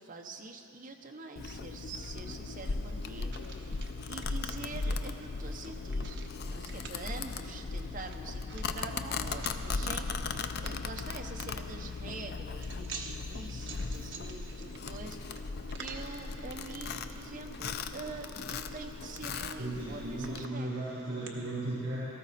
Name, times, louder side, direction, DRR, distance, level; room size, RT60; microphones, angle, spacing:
voice 1, 0.0-3.8 4.1-6.2 6.5-15.5 15.8-20.9, right 3 dB, 40° right, 3 dB, 0.9 m, -45 dB
Domestic sounds home sounds, 1.4-20.5, left 4 dB, 45° left, 0.5 m, -38 dB
sound 1, 2.3-21.3, right 4 dB, 55° right, 1.1 m, -52 dB
voice 2, 19.6-22.1, right 1 dB, 70° right, -9 dB, 3.6 m, -36 dB
18.0 x 14.0 x 4.2 m, 2.9 s
head